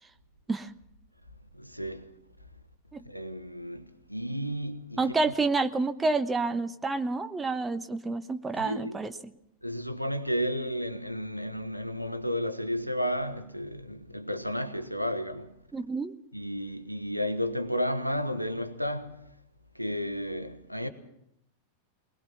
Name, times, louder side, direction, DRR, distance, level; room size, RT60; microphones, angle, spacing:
voice 1, 1.5-2.1 3.0-5.1 8.6-9.0 9.6-15.5 16.3-19.3 19.7-20.9, equal, 90° right, 1.3 m, -32 dB
voice 2, 5.0-9.3 15.7-16.1, right 3 dB, 15° right, 1.0 m, -29 dB
21.5 x 20.5 x 5.9 m
figure-of-eight pair, 90°, 0 cm